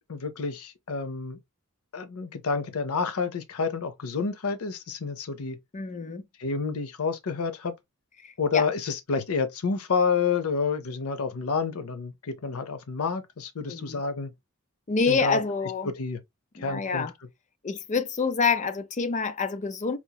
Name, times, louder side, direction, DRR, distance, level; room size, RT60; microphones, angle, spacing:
voice 1, 0.1-1.4 1.9-5.6 6.4-7.7 8.4-14.3 15.1-15.4 15.8-16.2 16.6-17.1, left 5 dB, 75° left, 0.6 m, -29 dB
voice 2, 5.7-6.3 8.2-8.7 13.7-14.0 14.9-15.9 16.6-17.1 17.6-20.0, left 5 dB, 35° left, 0.5 m, -27 dB
4.3 x 2.8 x 2.2 m
head